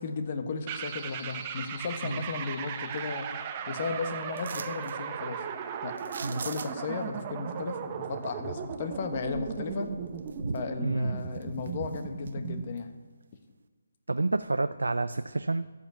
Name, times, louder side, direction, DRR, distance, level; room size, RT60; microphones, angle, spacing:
voice 1, 0.0-3.3 3.7-5.4 5.8-5.9 6.3-9.9 10.5-12.9, left 4 dB, 40° left, 7 dB, 1.3 m, -35 dB
sound 1, 0.7-12.7, right 7 dB, 30° right, 0.9 m, -37 dB
sound 2, 4.4-5.0 6.0-7.0 9.5-9.6 10.1-10.8 11.2-12.3 12.8-12.9, right 5 dB, 60° right, 0.8 m, -42 dB
voice 2, 10.3-11.2 14.1-15.7, right 3 dB, 80° right, 11 dB, 0.4 m, -30 dB
13.5 x 5.6 x 8.2 m, 1.4 s
figure-of-eight pair, 150°, 0 cm